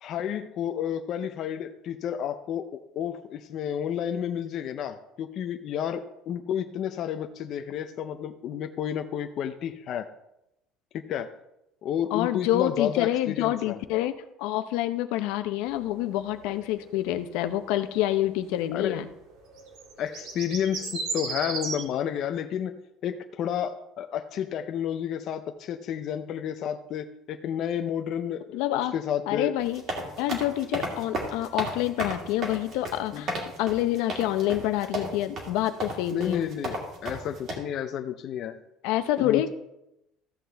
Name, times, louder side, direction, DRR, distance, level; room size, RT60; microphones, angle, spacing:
voice 1, 0.0-10.1 10.9-11.3 11.8-13.8 18.7-19.0 20.0-22.8 23.0-29.5 33.1-33.3 36.1-38.6 39.2-39.5, left 9 dB, 40° left, 7 dB, 0.5 m, -31 dB
voice 2, 12.1-14.1 14.4-19.1 28.5-28.9 29.3-29.8 30.2-36.5 38.8-39.5, left 13 dB, 75° left, 9 dB, 0.7 m, -27 dB
sound 1, 15.7-17.2 17.5-18.4 18.7-19.0 19.3-21.8, right 4 dB, 60° right, 1.8 m, -37 dB
sound 2, 29.6-37.6, right 1 dB, 35° right, 2.1 m, -33 dB
14.0 x 7.6 x 3.4 m, 0.87 s
cardioid pair, 175°, 0 cm